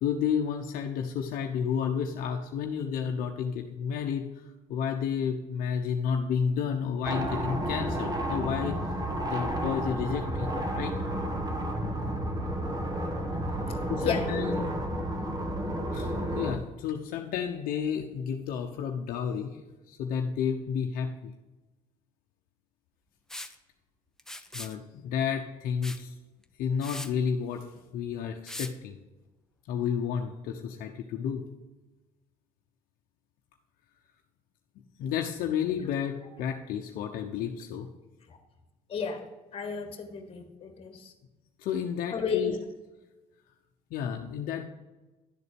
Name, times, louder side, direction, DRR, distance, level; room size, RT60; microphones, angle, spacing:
voice 1, 0.0-4.3 4.7-8.8 9.2-10.9 13.9-14.8 15.9-19.6 19.9-21.3 24.5-26.1 26.6-27.7 27.9-29.0 29.7-31.4 35.0-37.9 41.6-42.6 43.9-44.6, left 7 dB, 70° left, 3 dB, 0.8 m, -31 dB
sound 1, 7.0-16.6, right 1 dB, 25° right, 1.3 m, -31 dB
Liquid, 23.3-23.5 24.2-24.8 25.8-26.0 26.4-26.5 26.8-27.1 28.5-28.7, left 1 dB, 5° left, 0.7 m, -40 dB
voice 2, 38.9-41.1 42.1-42.6, left 6 dB, 40° left, 6 dB, 1.7 m, -33 dB
11.0 x 4.1 x 6.9 m, 1.1 s
cardioid pair, 95°, 15 cm